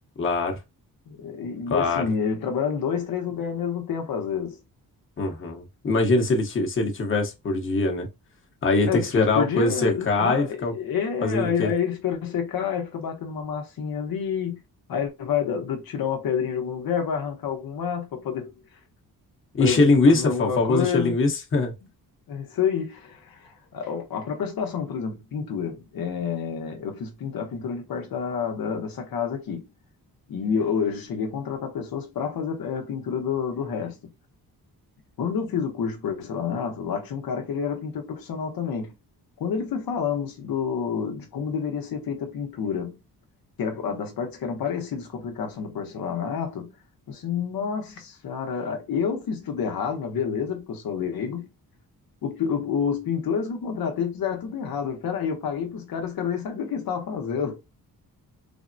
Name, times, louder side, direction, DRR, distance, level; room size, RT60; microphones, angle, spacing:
voice 1, 0.2-0.6 1.7-2.0 5.2-8.1 8.6-10.7 11.2-11.7 19.5-21.7, left 3 dB, 35° left, 0.9 m, -22 dB
voice 2, 1.1-4.6 8.9-14.6 14.9-18.5 19.6-21.1 22.3-29.7 30.3-34.0 35.2-38.9 39.4-43.0 43.6-46.8 47.1-51.5 52.2-57.6, left 7 dB, 70° left, 0.8 m, -29 dB
3.4 x 2.0 x 2.5 m
cardioid pair, 110°, 37 cm